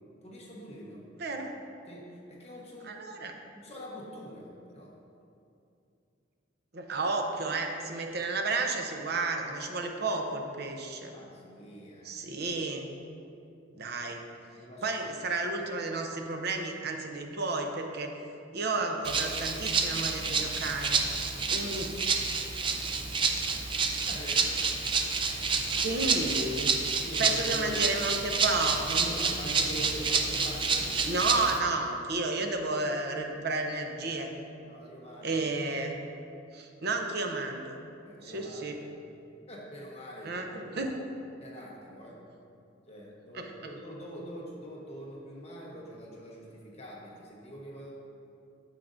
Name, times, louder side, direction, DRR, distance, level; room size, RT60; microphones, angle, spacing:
voice 1, 0.2-1.0 1.9-4.9 11.1-12.2 14.5-15.0 23.8-26.1 26.6-27.9 28.9-31.3 34.6-35.4 38.0-38.8 39.5-40.9 41.4-42.2 42.9-47.9, equal, 35° left, -4 dB, 1.2 m, -44 dB
voice 2, 1.2-1.5 2.8-3.3 6.7-11.2 12.0-12.9 13.7-14.2 14.8-18.2 18.5-21.1 21.5-22.0 25.8-26.7 27.2-29.1 31.1-34.3 35.2-36.0 36.5-37.8 38.2-38.8 40.2-40.9 43.3-43.5, right 3 dB, 55° right, 3 dB, 0.7 m, -32 dB
Rattle (instrument), 19.0-31.6, right 4 dB, 25° right, 0.5 m, -29 dB
8.9 x 7.5 x 2.6 m, 2.6 s
head